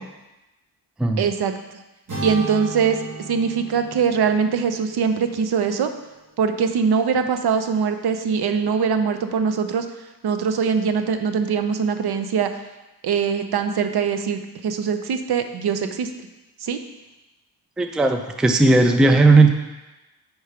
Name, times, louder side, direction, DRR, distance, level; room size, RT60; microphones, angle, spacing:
voice 1, 1.2-1.5 2.2-3.0 3.3-5.9 6.4-9.9 10.2-12.5 13.0-16.1 16.6-16.8, right 6 dB, 70° right, 8 dB, 0.6 m, -22 dB
sound 1, 2.1-6.1, right 2 dB, 50° right, 2.3 m, -35 dB
voice 2, 17.8-19.6, right 3 dB, ahead, 6 dB, 0.3 m, -16 dB
4.9 x 4.6 x 5.6 m, 1.0 s
wide cardioid pair, 110°, 40 cm